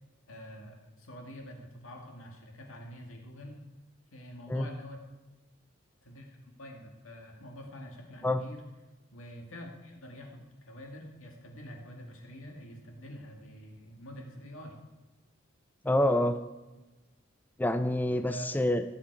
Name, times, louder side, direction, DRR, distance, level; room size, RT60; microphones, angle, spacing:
voice 1, 0.3-3.7 4.1-5.0 6.0-8.6 9.1-14.8 18.3-18.5, equal, 90° left, 2 dB, 2.2 m, -46 dB
voice 2, 15.8-16.4 17.6-18.8, left 1 dB, 10° left, 10 dB, 0.4 m, -27 dB
19.0 x 7.6 x 4.8 m, 1.2 s
head